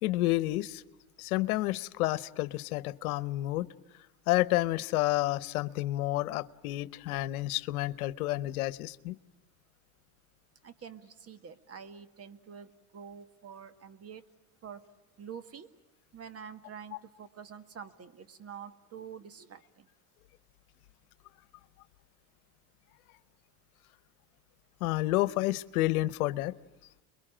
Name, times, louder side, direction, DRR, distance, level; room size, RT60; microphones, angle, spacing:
voice 1, 0.0-0.8 1.2-3.7 4.3-9.2 24.8-26.5, left 17 dB, 85° left, 1.0 m, -30 dB
voice 2, 10.6-14.2 14.6-14.9 15.2-15.7 16.1-19.9, right 7 dB, 35° right, 1.8 m, -47 dB
30.0 x 22.5 x 8.9 m
supercardioid pair, 110°, 42 cm